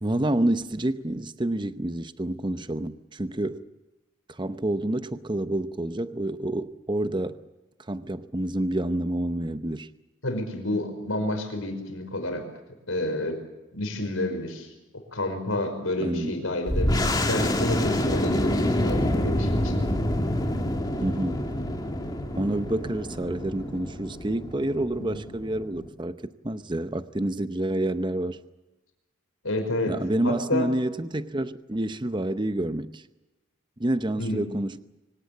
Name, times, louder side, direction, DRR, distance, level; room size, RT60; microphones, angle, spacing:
voice 1, 0.0-3.6 4.3-7.4 7.9-9.9 16.0-16.3 21.0-21.4 22.3-28.4 29.9-33.0 33.8-34.8, right 1 dB, 20° right, 0.8 m, -28 dB
voice 2, 10.2-12.5 12.9-13.4 13.7-19.8 29.4-30.0 30.2-30.7 34.2-34.4, left 1 dB, 85° left, 5.4 m, -30 dB
sound 1, 16.7-25.9, left 1 dB, 20° left, 2.6 m, -27 dB
24.5 x 17.5 x 8.5 m
head